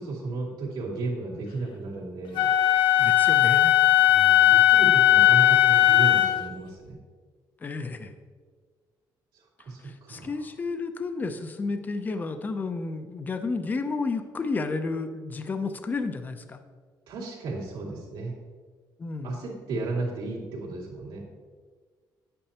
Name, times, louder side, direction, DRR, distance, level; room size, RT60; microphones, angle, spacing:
voice 1, 0.0-2.5 3.9-7.0 9.3-10.3 17.1-18.3 19.2-21.3, right 3 dB, 85° right, -4 dB, 2.6 m, -34 dB
Wind instrument woodwind instrument, 2.4-6.4, left 13 dB, 75° left, 0.7 m, -18 dB
voice 2, 3.0-3.8 7.6-8.1 9.8-16.6 19.0-19.4, left 3 dB, 20° left, 8 dB, 0.5 m, -31 dB
10.5 x 8.7 x 2.9 m, 1.5 s
cardioid pair, 165°, 8 cm